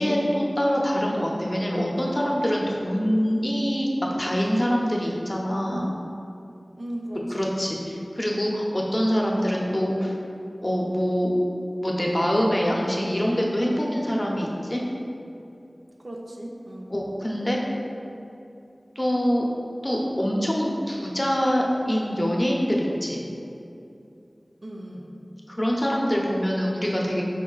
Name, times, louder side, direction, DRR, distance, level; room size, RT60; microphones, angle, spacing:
voice 1, 0.0-5.9 7.3-10.2 10.6-11.3 11.8-14.8 16.9-17.6 19.0-19.5 19.8-23.2 25.5-27.2, equal, 30° left, -2 dB, 0.6 m, -24 dB
voice 2, 6.8-7.5 16.0-17.0 24.6-25.1, right 1 dB, 60° right, -2 dB, 0.4 m, -36 dB
4.7 x 2.6 x 3.8 m, 2.7 s
wide cardioid pair, 55°, 0 cm